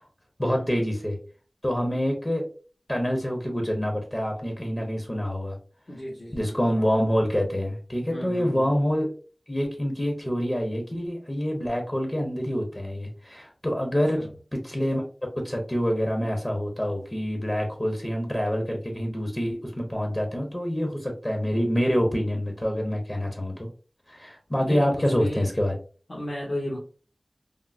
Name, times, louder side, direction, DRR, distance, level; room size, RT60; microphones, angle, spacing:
voice 1, 0.4-1.2 1.6-2.5 2.9-5.6 6.3-9.1 9.5-15.0 15.4-23.7 24.1-25.8, equal, 30° left, 2 dB, 0.8 m, -26 dB
voice 2, 5.9-6.5 8.1-8.7 13.9-14.3 24.6-25.5 26.1-26.8, left 1 dB, 55° left, -5 dB, 1.0 m, -35 dB
3.5 x 2.0 x 2.5 m, 0.38 s
wide cardioid pair, 50°, 0 cm